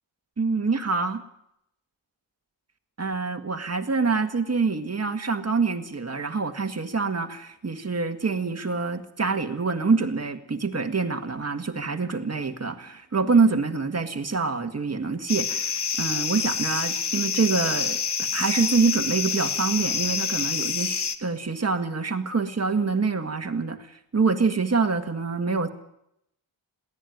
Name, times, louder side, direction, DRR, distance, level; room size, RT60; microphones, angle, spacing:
voice 1, 0.4-1.2 3.0-25.7, right 4 dB, 35° right, 7 dB, 1.9 m, -26 dB
sound 1, 15.3-21.2, left 6 dB, 60° left, 1.4 m, -27 dB
22.0 x 16.5 x 9.4 m, 0.78 s
wide cardioid pair, 135°, 45 cm